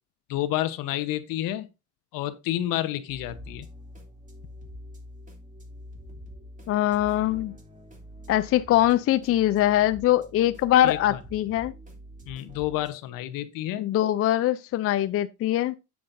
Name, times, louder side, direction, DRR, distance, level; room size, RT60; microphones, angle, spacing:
voice 1, 0.3-1.7 2.1-3.7 10.8-11.2 12.3-13.9, left 14 dB, 65° left, 1.1 m, -30 dB
sound 1, 3.1-12.9, equal, 20° right, 3.0 m, -46 dB
voice 2, 6.7-7.5 8.3-11.7 13.8-15.8, left 13 dB, 40° left, 0.5 m, -22 dB
9.1 x 7.7 x 2.6 m
cardioid pair, 110°, 36 cm